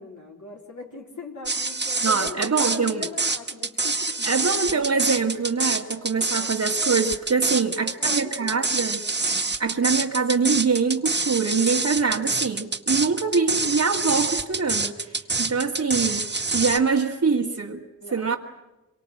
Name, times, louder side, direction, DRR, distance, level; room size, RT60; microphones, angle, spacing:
voice 1, 0.0-4.9 6.3-6.5 7.4-8.7 18.0-18.4, left 3 dB, 60° left, 0 dB, 4.0 m, -40 dB
sound 1, 1.5-16.8, right 3 dB, 30° right, 1.9 m, -26 dB
voice 2, 2.0-3.1 4.2-9.0 9.6-16.3 16.5-17.8 18.1-18.4, right 5 dB, 55° right, -3 dB, 2.0 m, -24 dB
26.0 x 24.0 x 7.9 m, 1.0 s
wide cardioid pair, 90°, 32 cm